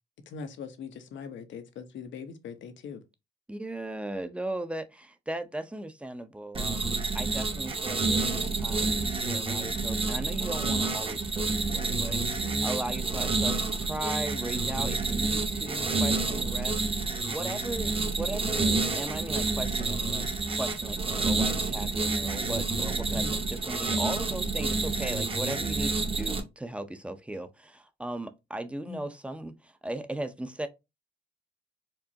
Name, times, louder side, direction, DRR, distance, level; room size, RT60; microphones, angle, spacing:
voice 1, 0.3-3.0 12.4-12.8 23.1-23.4 28.9-29.1, left 5 dB, 70° left, 0.9 m, -41 dB
voice 2, 3.5-30.7, right 1 dB, 5° right, 0.6 m, -37 dB
sound 1, 6.5-26.4, right 3 dB, 25° right, 0.9 m, -29 dB
4.5 x 2.5 x 2.8 m
cardioid pair, 90°, 20 cm